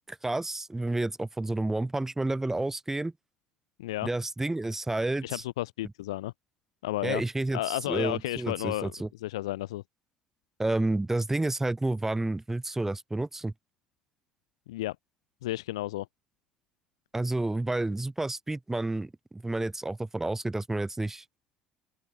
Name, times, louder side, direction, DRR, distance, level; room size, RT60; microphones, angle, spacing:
voice 1, 0.2-3.1 4.0-5.4 7.0-9.1 10.6-13.5 17.1-21.2, right 2 dB, 15° right, 8.0 m, -30 dB
voice 2, 5.2-6.3 6.8-7.2 7.5-9.8 14.7-14.9 15.4-16.1, left 16 dB, 85° left, 5.0 m, -32 dB
open air
hypercardioid pair, 65°, 3 cm